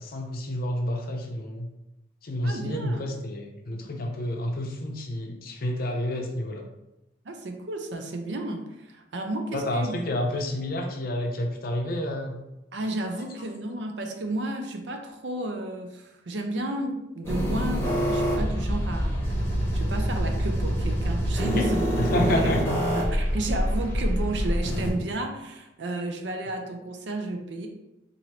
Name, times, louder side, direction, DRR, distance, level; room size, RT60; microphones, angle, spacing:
voice 1, 0.0-1.7 2.2-6.7 9.5-12.4 21.4-21.7 22.0-22.8, left 1 dB, 55° left, 3 dB, 0.6 m, -29 dB
voice 2, 2.4-3.1 7.2-10.0 12.7-19.2 19.7-21.9 22.3-22.6 22.9-27.7, right 1 dB, 70° right, 4 dB, 0.6 m, -32 dB
sound 1, 17.2-24.9, equal, 15° left, 0.9 m, -26 dB
4.6 x 2.6 x 2.9 m, 0.93 s
head